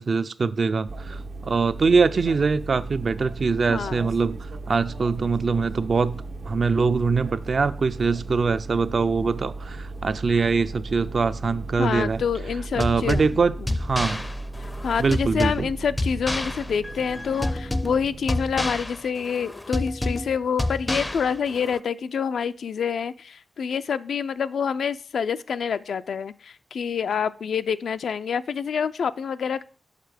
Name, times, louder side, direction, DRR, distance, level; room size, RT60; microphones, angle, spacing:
voice 1, 0.0-4.4 4.7-12.2 12.8-14.2 15.0-15.7, right 4 dB, 55° right, 0.4 m, -23 dB
sound 1, 0.9-18.6, right 2 dB, 80° right, 1.0 m, -37 dB
voice 2, 3.7-4.1 11.8-13.3 14.8-29.6, left 6 dB, 85° left, 0.4 m, -27 dB
sound 2, 12.8-21.8, left 1 dB, 20° left, 0.4 m, -29 dB
6.6 x 5.9 x 5.0 m
cardioid pair, 75°, 0 cm